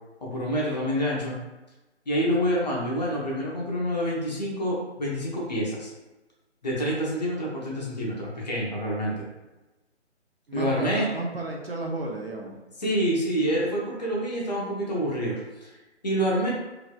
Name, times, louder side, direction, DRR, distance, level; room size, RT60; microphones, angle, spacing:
voice 1, 0.2-1.4 2.1-5.9 6.6-9.3 10.5-11.1 12.8-15.7 16.0-16.5, equal, 35° left, -5 dB, 0.7 m, -27 dB
voice 2, 10.5-12.5, right 2 dB, 55° right, 0 dB, 0.6 m, -32 dB
2.9 x 2.6 x 2.3 m, 1.1 s
figure-of-eight pair, 145°, 36 cm